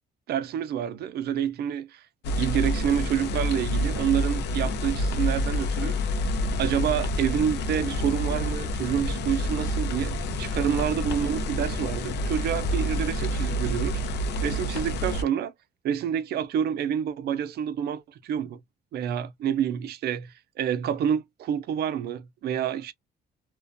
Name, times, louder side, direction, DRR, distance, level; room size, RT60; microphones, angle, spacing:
voice 1, 0.3-2.0 2.4-6.0 6.6-14.0 14.4-15.5 15.8-18.6 18.9-22.9, right 9 dB, 70° right, 0.5 m, -28 dB
sound 1, 2.2-15.2, equal, 75° left, 0.5 m, -28 dB
2.4 x 2.2 x 2.5 m
cardioid pair, 95°, 17 cm